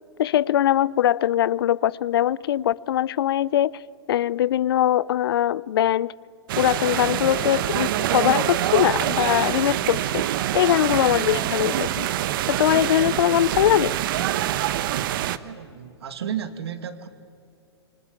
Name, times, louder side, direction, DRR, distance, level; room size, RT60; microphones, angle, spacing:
voice 1, 0.2-3.8 4.1-6.1 6.6-10.2 10.5-12.1 12.5-14.0, left 12 dB, 60° left, 0.5 m, -21 dB
sound 1, 6.5-15.4, right 12 dB, 55° right, 1.1 m, -25 dB
voice 2, 15.4-17.1, right 9 dB, 70° right, 2.1 m, -33 dB
26.5 x 24.5 x 8.5 m
hypercardioid pair, 115°, 14 cm